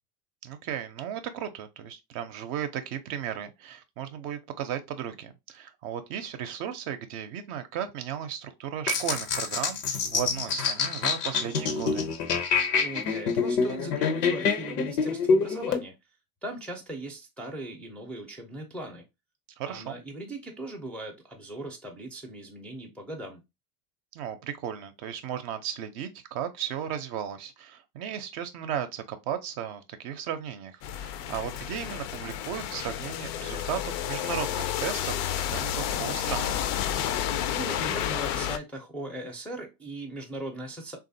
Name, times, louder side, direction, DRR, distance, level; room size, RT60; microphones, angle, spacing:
voice 1, 0.4-12.1 19.6-20.0 24.1-36.6, right 9 dB, 50° right, 0.6 m, -35 dB
sound 1, 8.9-15.8, left 5 dB, 85° left, 0.8 m, -26 dB
voice 2, 12.8-15.9 16.4-19.0 19.7-23.4 37.5-41.0, right 1 dB, 5° left, 0.4 m, -39 dB
sound 2, 30.8-38.6, left 10 dB, 55° left, 0.5 m, -31 dB
3.2 x 2.5 x 2.6 m
hypercardioid pair, 90°, 47 cm